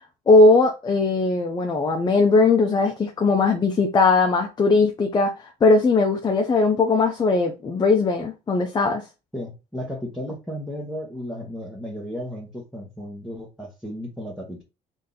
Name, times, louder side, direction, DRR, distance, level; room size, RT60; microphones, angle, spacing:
voice 1, 0.3-5.3 5.6-9.0, left 3 dB, 25° left, 0.6 m, -19 dB
voice 2, 9.3-14.6, equal, ahead, 1.2 m, -34 dB
3.7 x 2.7 x 3.8 m
cardioid pair, 110°, 17 cm